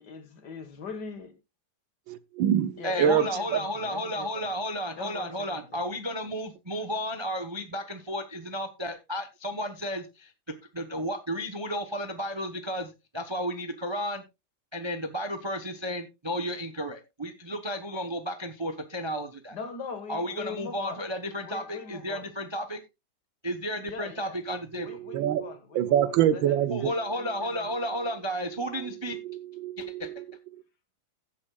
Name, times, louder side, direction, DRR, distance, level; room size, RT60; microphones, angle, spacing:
voice 1, 0.0-1.3 2.8-4.5 4.9-5.9 19.5-21.1 21.3-22.3 23.9-24.4 24.8-28.0, left 5 dB, 60° left, 2.1 m, -41 dB
voice 2, 2.1-3.6 24.7-26.9 29.1-30.2, right 10 dB, 85° right, 1.6 m, -26 dB
voice 3, 2.8-10.3 10.7-14.2 14.7-19.6 20.1-22.8 23.4-24.9 26.7-29.2 29.8-30.1, equal, 25° right, 0.6 m, -33 dB
16.0 x 8.8 x 2.3 m
omnidirectional pair, 2.1 m